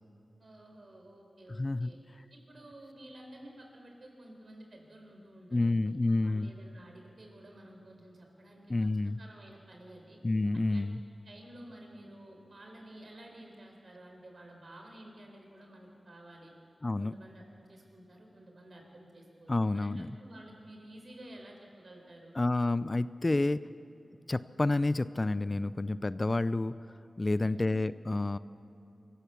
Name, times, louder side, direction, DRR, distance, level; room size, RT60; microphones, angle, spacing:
voice 1, 0.4-2.0 2.3-8.7 9.2-10.2 10.7-10.9 11.2-16.5 17.0-22.3 27.2-27.7, right 1 dB, 55° right, 1 dB, 4.5 m, -52 dB
voice 2, 1.6-1.9 5.5-6.5 8.7-9.2 10.2-11.0 16.8-17.1 19.5-20.1 22.4-23.6 24.3-26.8 27.2-28.4, left 2 dB, 30° left, 16 dB, 0.4 m, -29 dB
25.0 x 15.0 x 7.1 m, 2.8 s
wide cardioid pair, 80°, 0 cm